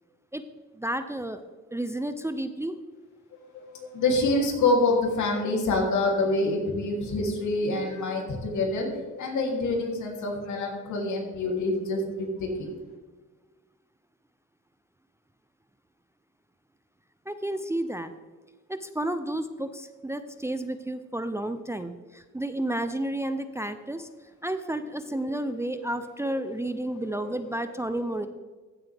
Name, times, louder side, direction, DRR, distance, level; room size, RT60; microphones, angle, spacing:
voice 1, 0.8-1.4 1.7-2.8 3.8-3.9 17.3-18.1 18.7-24.1 24.4-28.3, right 1 dB, 10° right, 9 dB, 0.5 m, -31 dB
voice 2, 3.5-12.7 25.3-26.6 26.9-27.1, left 2 dB, 75° left, 0 dB, 3.0 m, -27 dB
15.5 x 7.4 x 3.4 m, 1.4 s
cardioid pair, 90°, 30 cm